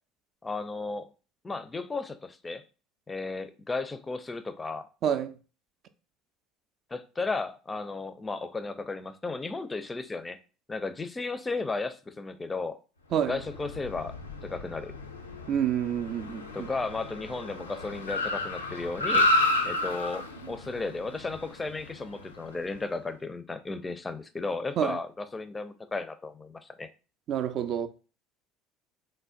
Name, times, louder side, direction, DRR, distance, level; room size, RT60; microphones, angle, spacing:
voice 1, 0.4-1.1 1.4-2.6 3.1-4.9 6.9-10.4 10.7-12.8 13.3-14.9 16.5-19.3 19.7-26.9, left 3 dB, 20° left, 0.4 m, -34 dB
voice 2, 5.0-5.3 13.1-13.4 15.5-16.7 24.8-25.0 27.3-27.9, right 9 dB, 50° right, 0.4 m, -28 dB
Car, 13.2-22.8, left 2 dB, 90° left, 0.4 m, -31 dB
3.2 x 2.1 x 3.8 m
figure-of-eight pair, 65°, 0 cm